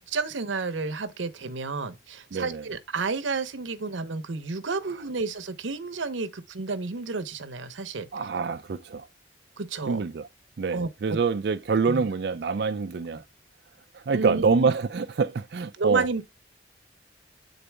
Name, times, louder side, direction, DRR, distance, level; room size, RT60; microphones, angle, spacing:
voice 1, 0.1-8.1 9.6-10.0 10.7-11.2 11.9-12.1 14.1-14.7 15.8-16.2, right 4 dB, 80° right, 0.8 m, -31 dB
voice 2, 2.3-2.6 8.1-9.0 9.9-10.3 10.6-13.2 13.9-16.1, right 5 dB, 55° right, 0.4 m, -26 dB
8.1 x 3.9 x 3.4 m
head